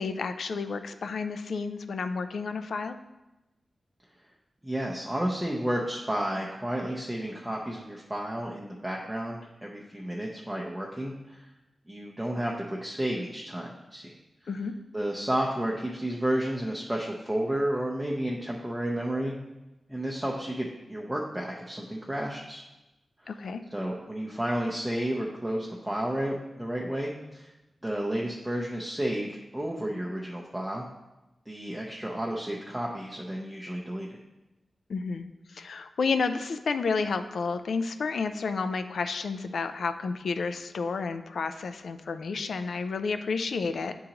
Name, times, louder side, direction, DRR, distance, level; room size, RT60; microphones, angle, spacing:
voice 1, 0.0-3.0 14.5-14.7 23.3-23.6 34.9-43.9, left 4 dB, 85° left, 9 dB, 0.4 m, -31 dB
voice 2, 4.6-11.4 11.9-14.1 14.9-19.4 19.9-22.6 23.2-23.3 23.7-27.5 27.8-30.9 31.5-34.2, right 1 dB, 10° right, -3 dB, 0.5 m, -31 dB
9.7 x 3.8 x 2.9 m, 1.0 s
wide cardioid pair, 150°, 0 cm